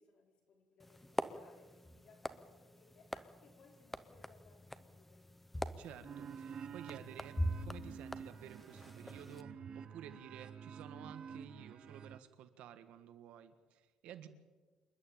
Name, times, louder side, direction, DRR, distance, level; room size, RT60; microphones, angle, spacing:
voice 1, 0.0-5.2 11.3-11.7, left 4 dB, 50° left, 1 dB, 4.8 m, -66 dB
sound 1, 0.8-9.4, equal, 5° left, 0.8 m, -44 dB
voice 2, 5.8-14.3, right 9 dB, 70° right, 10 dB, 1.7 m, -53 dB
sound 2, 6.0-12.2, right 7 dB, 40° right, 0.7 m, -49 dB
27.5 x 11.5 x 8.8 m, 1.3 s
cardioid pair, 165°, 2 cm